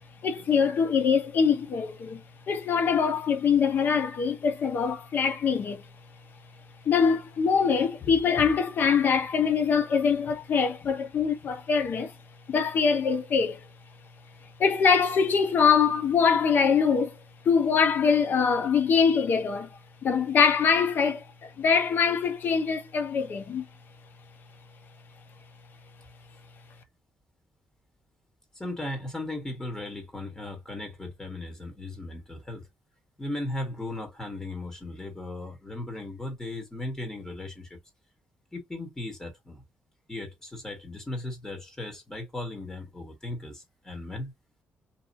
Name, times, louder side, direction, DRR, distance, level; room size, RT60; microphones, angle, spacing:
voice 1, 0.2-2.2 2.5-5.8 6.9-12.1 12.5-13.6 14.6-17.1 17.4-19.7 20.0-23.7, left 6 dB, 55° left, 0.7 m, -23 dB
voice 2, 28.5-32.7 33.2-37.8 38.5-39.6 40.1-44.3, left 2 dB, 15° left, 1.4 m, -37 dB
2.9 x 2.4 x 2.5 m
cardioid pair, 105°, 4 cm